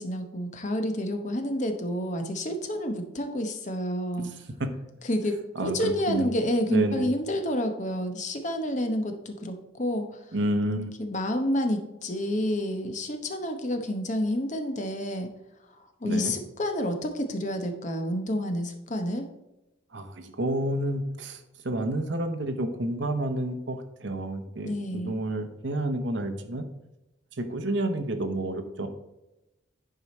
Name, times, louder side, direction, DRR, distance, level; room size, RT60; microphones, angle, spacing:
voice 1, 0.0-4.3 5.0-10.2 11.0-15.3 15.8-19.3 24.6-25.2, left 1 dB, 35° left, 5 dB, 0.9 m, -29 dB
voice 2, 5.5-6.3 6.7-7.1 10.3-10.9 16.0-16.3 19.9-26.7 27.4-28.9, right 1 dB, 65° right, 7 dB, 0.9 m, -30 dB
10.5 x 4.8 x 4.2 m, 0.96 s
head